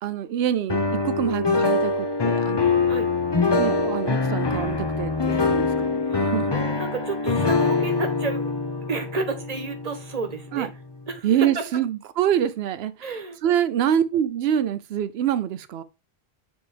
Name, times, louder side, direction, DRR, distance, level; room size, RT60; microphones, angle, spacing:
voice 1, 0.0-2.8 3.6-6.6 10.5-10.7 11.2-12.9 13.4-15.8, right 10 dB, 80° right, 0.8 m, -25 dB
sound 1, 0.7-10.6, left 3 dB, 25° left, 0.7 m, -24 dB
voice 2, 6.0-8.5 8.9-10.7 11.1-11.6 13.0-13.4, right 4 dB, 40° right, 1.2 m, -31 dB
7.2 x 4.3 x 3.4 m
omnidirectional pair, 1.1 m